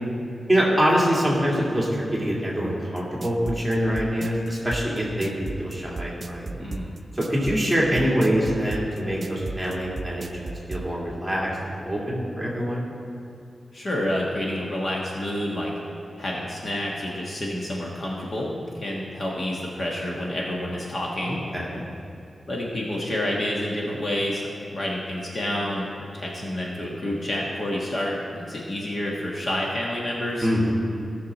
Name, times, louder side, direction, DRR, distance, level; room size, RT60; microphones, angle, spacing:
voice 1, 0.5-6.7 7.1-12.8 21.2-21.8 30.4-30.7, equal, ahead, -6 dB, 2.4 m, -25 dB
sound 1, 3.0-10.8, right 3 dB, 40° right, 0.5 m, -33 dB
voice 2, 6.6-6.9 13.7-15.7 16.2-21.4 22.5-30.5, left 1 dB, 45° left, -3 dB, 1.4 m, -29 dB
16.5 x 6.6 x 4.2 m, 2.7 s
wide cardioid pair, 150°, 0 cm